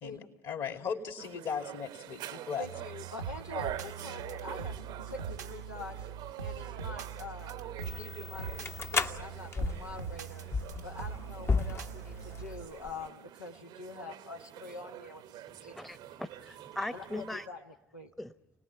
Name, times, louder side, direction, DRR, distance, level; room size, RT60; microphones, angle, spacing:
voice 1, 0.0-2.7, left 6 dB, 55° left, 4 dB, 2.8 m, -37 dB
sound 1, 1.2-17.5, right 12 dB, 55° right, 0.8 m, -46 dB
voice 2, 2.6-4.8 5.1-6.1 6.4-10.5 10.8-15.7 16.9-17.6 17.9-18.1, left 3 dB, 85° left, 0 dB, 1.0 m, -45 dB
sound 2, 2.6-12.7, right 7 dB, 85° right, 1.0 m, -42 dB
sound 3, 7.8-13.1, left 4 dB, 30° left, 0.9 m, -35 dB
voice 3, 15.6-17.5 18.2-18.3, left 1 dB, ahead, 10 dB, 0.9 m, -40 dB
29.5 x 19.5 x 8.4 m, 1.0 s
figure-of-eight pair, 60°, 9 cm